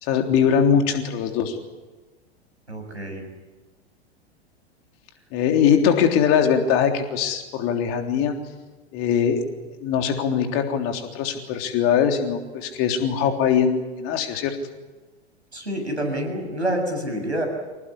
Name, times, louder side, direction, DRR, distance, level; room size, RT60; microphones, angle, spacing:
voice 1, 0.0-1.6 5.3-8.3 8.9-9.4 9.8-14.6, left 7 dB, 40° left, 4 dB, 3.6 m, -21 dB
voice 2, 2.7-3.2 15.5-17.5, right 1 dB, 85° right, 4 dB, 7.2 m, -27 dB
26.5 x 18.5 x 10.0 m, 1.2 s
figure-of-eight pair, 90°, 32 cm